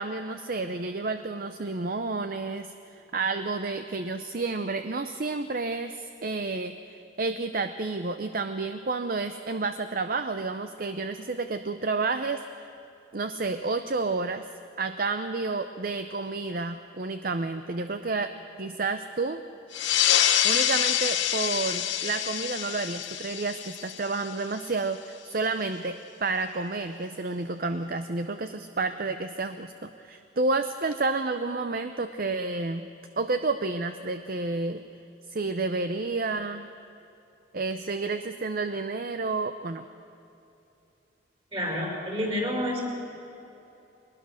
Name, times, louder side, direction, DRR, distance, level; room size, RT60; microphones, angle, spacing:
voice 1, 0.0-12.7 13.1-14.4 14.8-19.4 20.4-32.9 33.2-34.8 35.3-36.7 37.5-39.9, right 3 dB, 50° right, 9 dB, 0.6 m, -30 dB
sound 1, 19.7-24.8, left 10 dB, 75° left, 1.1 m, -26 dB
voice 2, 41.5-42.8, left 1 dB, 30° right, -1 dB, 5.0 m, -29 dB
22.5 x 20.5 x 6.4 m, 2.8 s
head